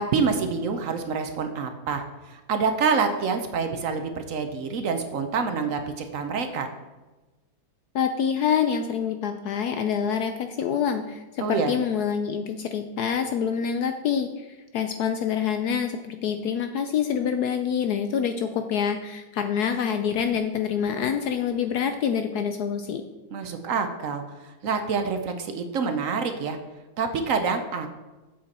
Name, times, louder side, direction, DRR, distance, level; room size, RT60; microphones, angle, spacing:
voice 1, 0.0-6.7 11.4-11.7 23.3-26.6 27.0-27.9, right 5 dB, 60° right, 6 dB, 0.9 m, -27 dB
voice 2, 7.9-14.5 14.7-23.0, left 7 dB, 75° left, 7 dB, 0.9 m, -26 dB
7.7 x 7.5 x 4.2 m, 1.2 s
omnidirectional pair, 2.1 m